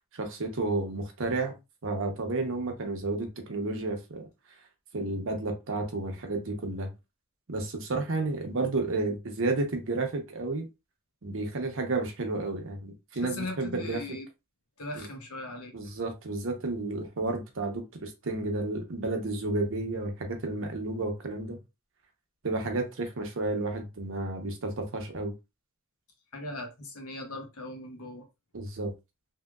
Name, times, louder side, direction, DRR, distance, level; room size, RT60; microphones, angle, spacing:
voice 1, 0.1-1.5 1.8-4.3 4.9-6.9 7.5-10.7 11.2-14.0 15.0-15.1 15.7-21.6 22.4-25.3 28.5-28.9, right 2 dB, 65° right, 0.9 m, -31 dB
voice 2, 13.2-14.3 14.8-15.7 26.3-28.2, left 2 dB, 85° left, 1.0 m, -39 dB
3.2 x 2.8 x 2.3 m
head